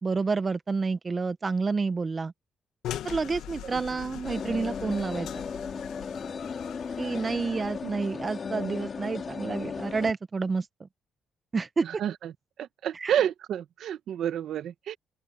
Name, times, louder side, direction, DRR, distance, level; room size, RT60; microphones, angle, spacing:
voice 1, 0.0-2.3 3.0-5.3 7.0-10.9 11.5-11.8 12.9-13.1, right 4 dB, 35° right, 1.0 m, -29 dB
sound 1, 2.8-7.9, left 12 dB, 85° left, 1.7 m, -41 dB
sound 2, 4.2-10.1, left 5 dB, 45° left, 3.0 m, -35 dB
voice 2, 11.8-12.3 12.6-15.0, right 10 dB, 70° right, 1.2 m, -30 dB
open air
cardioid pair, 90°, 0 cm